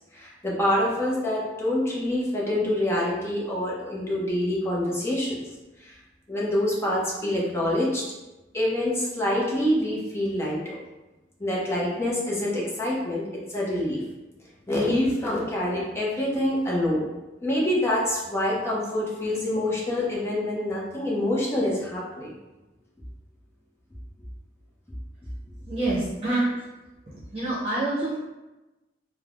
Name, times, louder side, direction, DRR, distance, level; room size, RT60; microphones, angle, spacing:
voice 1, 0.1-5.4 5.8-6.0 6.3-8.0 8.5-10.8 11.4-14.0 14.7-17.1 17.4-22.3, left 1 dB, 15° left, -5 dB, 0.5 m, -26 dB
voice 2, 25.7-26.5 27.1-28.2, right 2 dB, 35° right, -10 dB, 0.8 m, -26 dB
3.2 x 2.0 x 2.4 m, 1.1 s
head